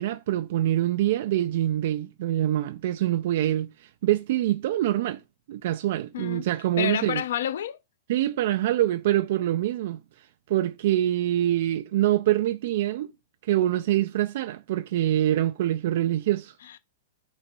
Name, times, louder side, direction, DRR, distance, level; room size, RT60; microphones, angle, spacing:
voice 1, 0.0-5.2 5.5-7.2 8.1-13.1 13.4-16.6, right 13 dB, 45° right, 0.3 m, -25 dB
voice 2, 6.8-7.8 16.7-16.8, left 10 dB, 65° left, 0.8 m, -29 dB
6.2 x 4.2 x 5.2 m
supercardioid pair, 175°, 0 cm